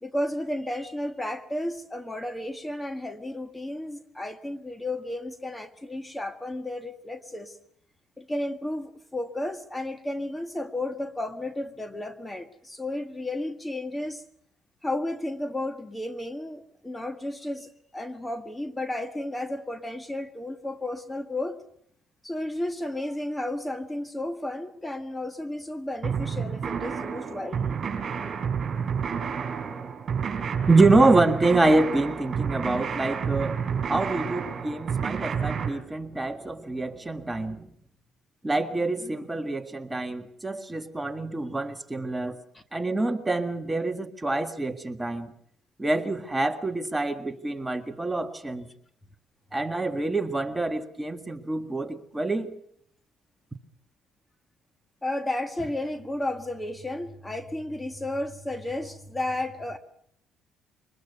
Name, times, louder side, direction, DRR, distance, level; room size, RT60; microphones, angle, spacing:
voice 1, 0.0-7.6 8.2-14.2 14.8-21.6 22.2-27.9 39.0-39.2 42.5-42.6 55.0-59.8, left 1 dB, 10° left, 9 dB, 1.5 m, -33 dB
sound 1, 26.0-35.7, right 6 dB, 45° right, 4.8 m, -30 dB
voice 2, 30.7-37.7 38.4-42.4 42.7-45.3 45.8-48.7 49.5-52.5, right 2 dB, 15° right, 7 dB, 1.7 m, -26 dB
23.5 x 20.5 x 6.8 m, 0.68 s
supercardioid pair, 85°, 0 cm